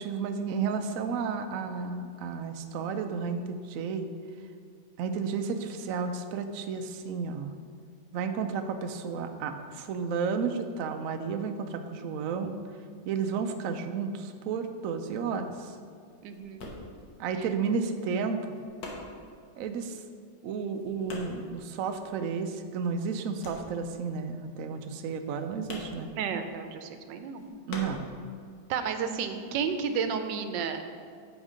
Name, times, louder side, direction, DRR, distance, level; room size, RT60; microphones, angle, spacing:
voice 1, 0.0-4.1 5.0-7.5 8.1-12.6 13.1-15.8 17.2-18.6 19.6-20.0 20.4-26.1 27.7-28.1, right 5 dB, 70° right, 6 dB, 0.8 m, -32 dB
sound 1, 15.9-22.6 22.9-28.7 29.0-30.0, left 2 dB, 85° left, 1.8 m, -45 dB
voice 2, 16.2-16.7 17.4-17.5 26.1-27.4 28.7-30.8, right 6 dB, 90° right, 7 dB, 1.3 m, -32 dB
8.0 x 4.5 x 4.9 m, 2.2 s
omnidirectional pair, 1.9 m